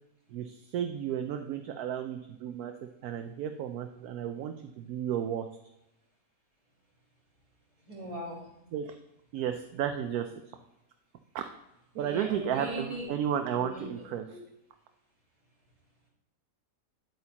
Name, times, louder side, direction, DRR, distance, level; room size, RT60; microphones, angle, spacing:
voice 1, 0.3-5.5 8.7-9.0 9.3-10.6 11.3-11.4 11.9-14.3, right 9 dB, 75° right, 6 dB, 1.0 m, -33 dB
voice 2, 7.9-8.6 12.0-13.1 13.5-14.4, equal, 20° right, -5 dB, 3.6 m, -40 dB
9.5 x 8.3 x 2.9 m, 0.90 s
omnidirectional pair, 1.7 m